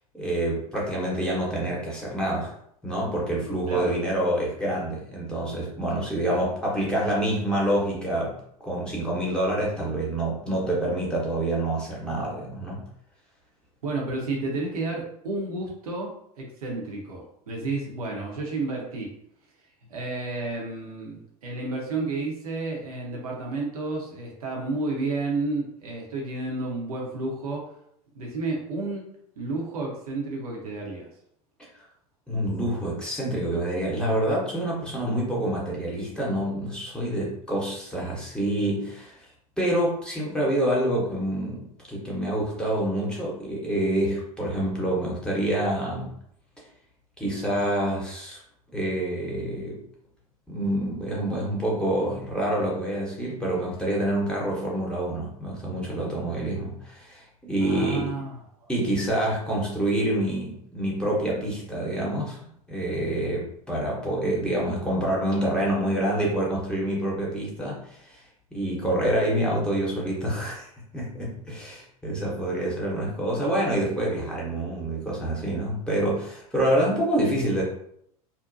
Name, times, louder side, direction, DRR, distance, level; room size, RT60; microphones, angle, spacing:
voice 1, 0.1-2.5 2.8-8.3 8.6-12.8 32.3-39.2 39.6-46.1 47.2-48.4 48.7-49.8 50.5-58.1 58.7-62.4 62.7-68.2 68.5-77.6, right 1 dB, 5° left, -5 dB, 0.8 m, -27 dB
voice 2, 13.8-19.1 19.9-27.7 28.1-29.1 29.4-31.1 57.6-58.7, right 3 dB, 75° right, -1 dB, 0.7 m, -31 dB
2.6 x 2.1 x 2.5 m, 0.71 s
figure-of-eight pair, 85°, 19 cm